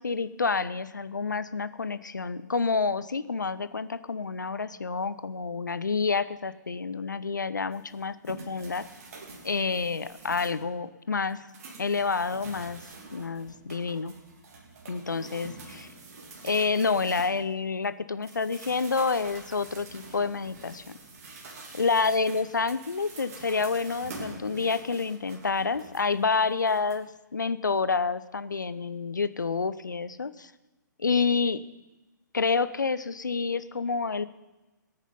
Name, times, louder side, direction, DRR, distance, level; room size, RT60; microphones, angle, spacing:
voice 1, 0.0-8.9 9.4-11.4 11.8-12.8 13.1-14.1 14.9-15.9 16.4-20.8 21.8-30.5 31.0-31.6 32.3-34.3, left 4 dB, 70° left, 15 dB, 0.7 m, -28 dB
sound 1, 7.7-10.7 11.1-17.9 18.2-27.0, right 3 dB, 50° right, 3.1 m, -46 dB
19.0 x 9.2 x 5.5 m, 1.1 s
figure-of-eight pair, 125°, 10 cm